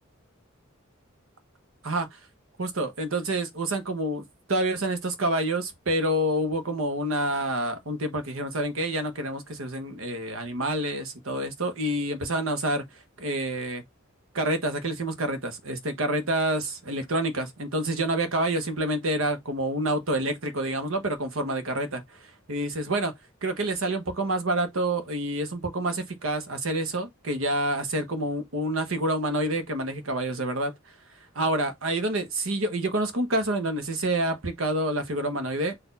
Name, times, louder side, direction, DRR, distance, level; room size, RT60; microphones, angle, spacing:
voice 1, 1.8-2.2 2.6-13.8 14.3-23.1 23.4-30.7 31.3-35.7, right 1 dB, 80° right, 1.1 m, -28 dB
4.2 x 2.7 x 4.0 m
head